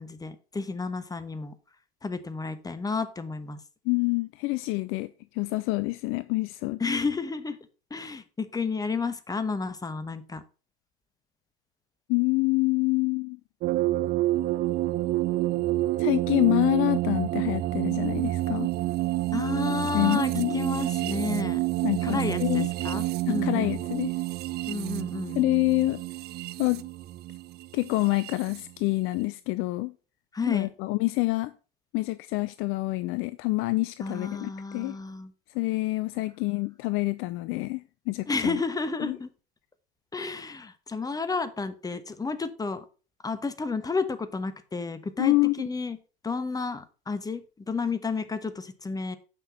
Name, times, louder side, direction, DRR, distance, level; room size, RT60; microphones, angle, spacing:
voice 1, 0.0-1.5 2.0-3.6 6.8-7.6 7.9-10.4 19.3-21.6 22.0-23.8 24.7-25.4 30.3-30.7 34.0-35.3 38.3-39.3 40.1-42.8 43.2-46.0 46.2-49.2, left 4 dB, 10° left, 1.2 m, -31 dB
voice 2, 3.9-6.8 12.1-13.4 16.0-18.7 19.9-20.6 21.8-22.7 23.3-24.1 25.3-26.0 26.6-26.8 27.7-29.9 30.5-31.5 31.9-35.0 35.5-38.6 39.0-39.2 45.2-45.7, left 22 dB, 45° left, 0.5 m, -27 dB
sound 1, 13.6-28.6, right 17 dB, 35° right, 0.5 m, -28 dB
9.1 x 5.9 x 5.4 m
hypercardioid pair, 85°, 30 cm